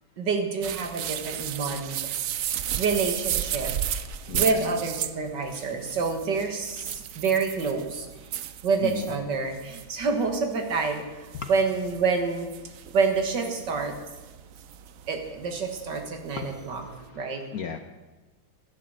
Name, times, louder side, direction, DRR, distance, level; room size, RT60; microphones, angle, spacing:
voice 1, 0.2-2.1 2.8-3.7 4.4-8.1 8.6-12.5 12.9-13.9 15.1-16.8 17.1-17.4, right 4 dB, 60° right, 5 dB, 2.2 m, -27 dB
sound 1, 0.6-17.1, right 10 dB, 80° right, 0.7 m, -35 dB
voice 2, 4.3-4.8 8.8-9.1 11.4-11.5 16.3-17.8, left 7 dB, 60° left, 8 dB, 1.0 m, -36 dB
12.5 x 10.5 x 7.7 m, 1.2 s
omnidirectional pair, 2.2 m